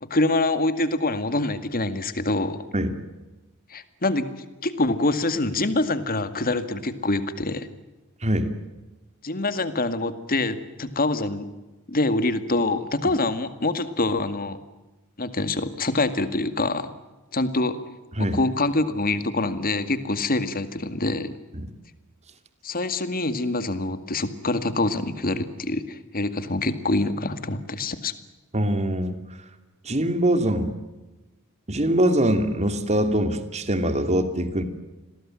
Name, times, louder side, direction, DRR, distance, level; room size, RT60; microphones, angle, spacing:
voice 1, 0.0-2.6 3.7-7.7 9.2-11.5 11.9-14.6 15.2-16.9 17.3-17.8 18.2-21.3 22.6-28.1, left 2 dB, 40° left, 11 dB, 2.0 m, -25 dB
voice 2, 28.5-29.2 29.8-30.7 31.7-34.6, right 1 dB, 30° right, 9 dB, 2.7 m, -23 dB
29.5 x 22.0 x 7.7 m, 1.1 s
head